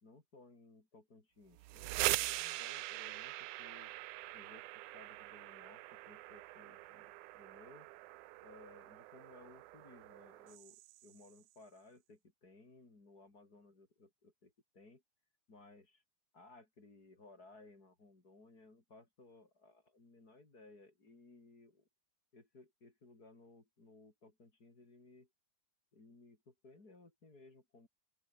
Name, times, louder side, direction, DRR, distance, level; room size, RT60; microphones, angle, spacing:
voice 1, 0.0-4.0 4.3-7.9 8.4-15.0 15.5-16.0 16.3-21.8 22.3-25.3 25.9-27.9, left 3 dB, 30° left, 4.6 m, -60 dB
sound 1, 1.5-11.3, right 18 dB, 85° right, 2.1 m, -42 dB
open air
omnidirectional pair, 3.7 m